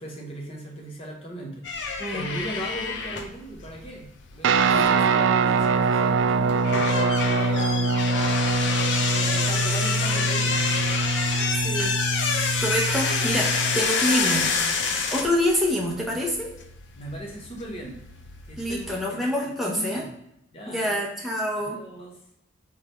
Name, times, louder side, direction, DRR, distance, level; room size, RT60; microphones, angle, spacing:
voice 1, 0.0-7.9 8.6-11.0 16.9-18.0 18.5-19.2 19.6-20.2 20.5-21.0 21.6-22.2, right 1 dB, 30° left, -1 dB, 1.0 m, -38 dB
sound 1, 1.6-19.0, left 5 dB, 75° left, 0.6 m, -28 dB
Guitar, 4.4-13.8, right 4 dB, 80° right, 0.3 m, -24 dB
voice 2, 11.6-14.5 15.1-16.5 18.6-20.0 20.7-21.8, equal, ahead, -3 dB, 0.8 m, -27 dB
3.7 x 3.3 x 4.3 m, 0.79 s
head